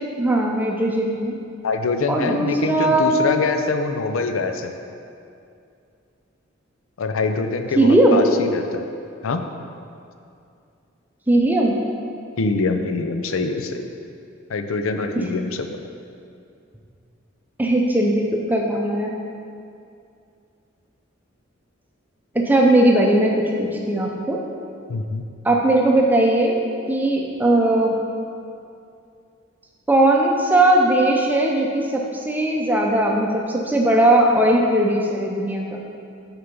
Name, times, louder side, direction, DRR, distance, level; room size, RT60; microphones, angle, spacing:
voice 1, 0.2-1.3 2.1-3.1 7.8-8.2 11.3-11.8 15.2-15.3 17.6-19.1 22.3-24.4 25.4-26.6 26.9-28.0 29.9-35.8, right 1 dB, 10° right, 0 dB, 0.6 m, -18 dB
voice 2, 1.6-4.7 7.0-8.8 9.2-9.4 12.4-13.9 14.5-15.8 24.9-25.2, left 3 dB, 85° left, 6 dB, 0.5 m, -24 dB
6.7 x 4.5 x 5.3 m, 2.5 s
head